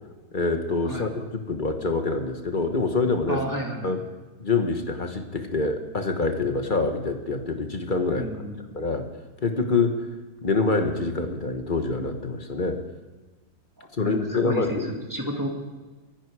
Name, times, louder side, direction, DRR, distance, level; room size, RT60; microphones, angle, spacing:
voice 1, 0.3-3.4 3.8-4.0 4.4-8.3 8.7-9.1 9.4-10.0 10.4-12.8 14.0-14.9, left 3 dB, 30° left, 6 dB, 1.2 m, -25 dB
voice 2, 3.3-3.9 8.2-8.7 13.8-15.5, equal, 10° right, 0 dB, 2.2 m, -31 dB
25.0 x 10.5 x 4.8 m, 1.2 s
omnidirectional pair, 1.9 m